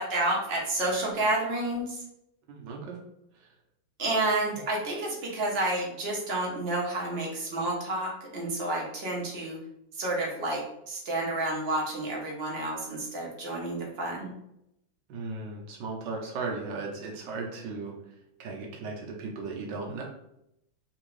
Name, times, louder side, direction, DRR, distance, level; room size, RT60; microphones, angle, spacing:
voice 1, 0.0-2.0 4.0-9.6 9.9-14.3, right 2 dB, 50° right, -2 dB, 0.7 m, -30 dB
voice 2, 2.5-3.0 3.3-3.5 15.1-18.0 18.4-20.0, right 3 dB, 70° right, 0 dB, 1.3 m, -36 dB
3.5 x 2.9 x 3.1 m, 0.81 s
omnidirectional pair, 2.2 m